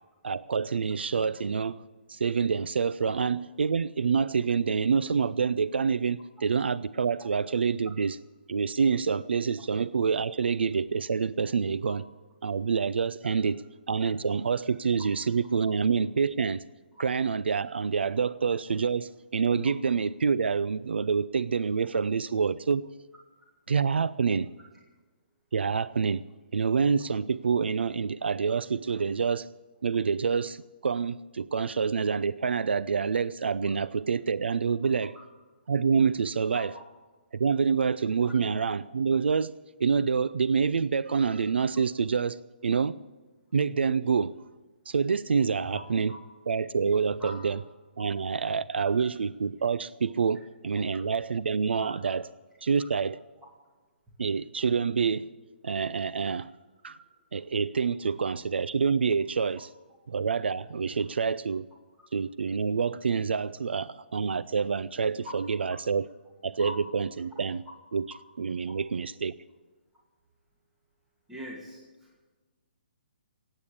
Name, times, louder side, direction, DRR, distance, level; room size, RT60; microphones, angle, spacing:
voice 1, 0.2-1.8 2.1-8.2 8.5-12.0 12.4-13.6 13.9-16.6 17.0-22.9 23.7-24.5 25.5-26.2 26.5-29.5 29.8-35.1 35.7-36.7 37.3-39.5 39.8-43.0 43.5-44.4 44.9-46.1 46.5-47.6 48.0-52.3 52.6-53.2 54.2-55.3 55.6-56.5 56.8-57.0 57.3-59.7 60.1-61.7 62.1-66.1 66.4-67.6 67.9-68.1 68.4-69.3, right 5 dB, 85° right, 17 dB, 0.4 m, -27 dB
voice 2, 71.3-72.2, equal, 5° right, -3 dB, 2.3 m, -42 dB
15.5 x 9.0 x 9.8 m, 1.3 s
hypercardioid pair, 150°, 6 cm